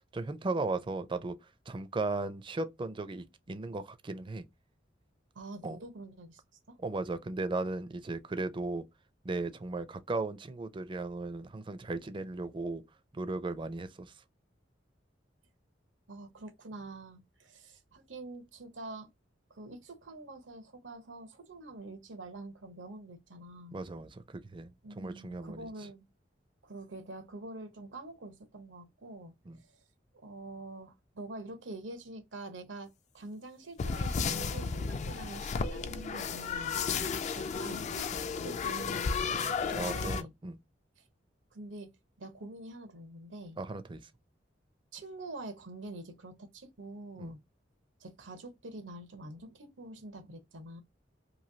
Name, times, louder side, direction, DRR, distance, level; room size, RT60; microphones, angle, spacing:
voice 1, 0.1-1.3 1.7-4.4 5.6-5.8 6.8-8.8 9.2-12.8 13.1-14.1 23.7-25.7 29.5-29.6 36.9-37.1 39.8-40.6 43.6-44.0 47.2-47.3, right 3 dB, 25° right, 0.4 m, -36 dB
voice 2, 5.3-6.4 6.7-6.8 16.1-19.1 19.5-23.8 24.8-26.1 26.6-29.8 30.1-36.8 37.3-40.3 41.0-41.1 41.5-41.9 42.2-43.6 44.9-47.4 48.0-50.8, right 2 dB, 90° right, 0.9 m, -46 dB
sound 1, 33.8-40.2, left 5 dB, 40° left, 0.3 m, -33 dB
3.1 x 2.6 x 2.6 m
head